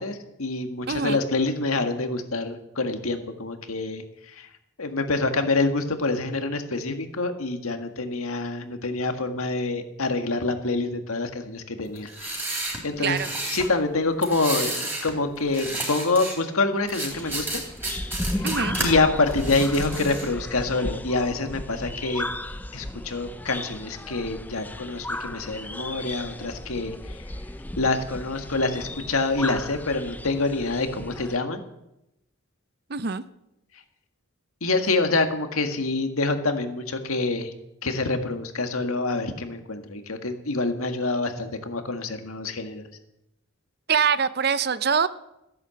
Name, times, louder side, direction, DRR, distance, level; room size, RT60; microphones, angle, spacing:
voice 1, 0.0-4.5 4.8-12.6 12.8-13.2 13.5-17.6 18.1-18.5 18.8-22.3 22.7-27.2 27.8-31.6 34.6-37.5 37.8-42.9, left 3 dB, 85° left, 6 dB, 1.8 m, -26 dB
voice 2, 0.9-1.2 13.0-13.3 18.4-18.8 32.9-33.2 43.9-45.1, right 6 dB, 45° right, 15 dB, 0.6 m, -24 dB
sound 1, 12.0-13.7 14.2-15.1 15.4-16.4 16.9-18.9 19.3-20.3, right 2 dB, 10° right, 3.6 m, -31 dB
sound 2, 17.1-31.4, left 1 dB, 10° left, 0.4 m, -35 dB
15.0 x 11.0 x 7.7 m, 0.88 s
head